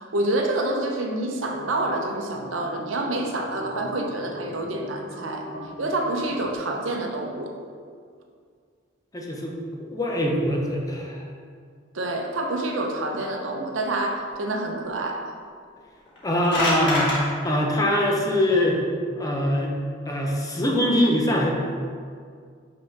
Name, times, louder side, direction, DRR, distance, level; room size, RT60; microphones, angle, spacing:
voice 1, 0.0-5.5 5.8-7.5 11.9-15.3, right 2 dB, 75° right, 2 dB, 0.7 m, -27 dB
sound 1, 1.3-6.5, left 1 dB, 45° left, 1.1 m, -39 dB
voice 2, 9.1-9.5 9.9-11.2 16.2-17.2 17.4-18.8 19.2-19.7 20.1-21.5, left 1 dB, 20° left, -1 dB, 0.7 m, -23 dB
sound 2, 16.1-17.2, left 1 dB, 65° left, 1.4 m, -25 dB
5.7 x 3.7 x 5.3 m, 2.1 s
head